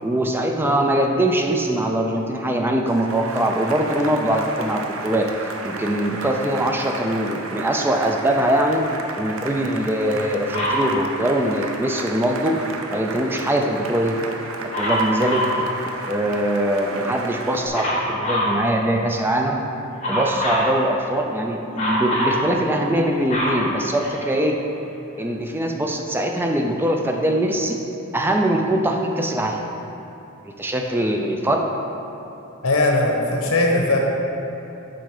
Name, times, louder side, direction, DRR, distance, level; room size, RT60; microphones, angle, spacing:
voice 1, 0.0-5.3 5.6-8.8 9.2-12.6 12.9-14.2 14.6-15.6 16.1-19.6 20.1-24.6 25.2-27.8 28.1-29.7 30.4-31.7, right 1 dB, 10° right, 2 dB, 0.4 m, -22 dB
Cheering / Applause, 2.9-17.7, right 3 dB, 65° right, 0.6 m, -33 dB
Dog, 10.5-10.9 14.7-15.6 17.7-18.6 20.0-20.7 21.7-22.4 22.9-24.4 25.2-25.3, equal, 30° left, 1.5 m, -24 dB
voice 2, 32.6-34.0, left 2 dB, 85° left, 0 dB, 1.1 m, -19 dB
7.9 x 4.6 x 4.8 m, 3.0 s
head